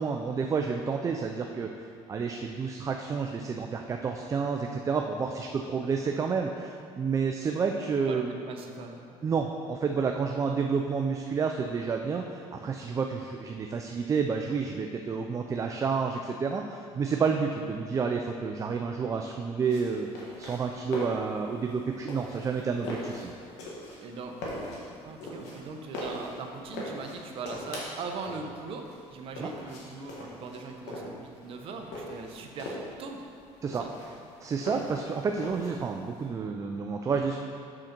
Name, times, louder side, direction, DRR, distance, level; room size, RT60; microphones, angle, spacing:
voice 1, 0.0-8.4 9.2-23.3 29.4-29.5 33.6-33.9 34.4-37.4, right 5 dB, 30° right, 3 dB, 0.4 m, -30 dB
voice 2, 8.1-9.1 24.0-24.4 25.0-33.2 33.7-33.9, right 4 dB, 55° right, 3 dB, 0.9 m, -40 dB
sound 1, 19.6-36.2, left 1 dB, 90° left, 1.7 m, -41 dB
6.5 x 6.3 x 4.4 m, 2.4 s
cardioid pair, 115°, 12 cm